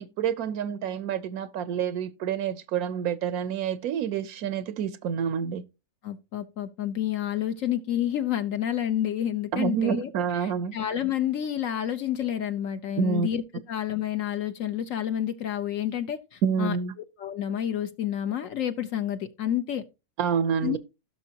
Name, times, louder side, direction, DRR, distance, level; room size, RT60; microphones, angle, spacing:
voice 1, 0.0-5.6 9.5-10.8 13.0-13.3 16.4-16.9 20.2-20.8, right 7 dB, 90° right, 1.2 m, -28 dB
voice 2, 6.0-10.1 10.4-13.4 13.7-16.8 17.2-19.8 20.6-20.8, left 11 dB, 70° left, 1.1 m, -29 dB
16.0 x 6.2 x 2.8 m
omnidirectional pair, 1.5 m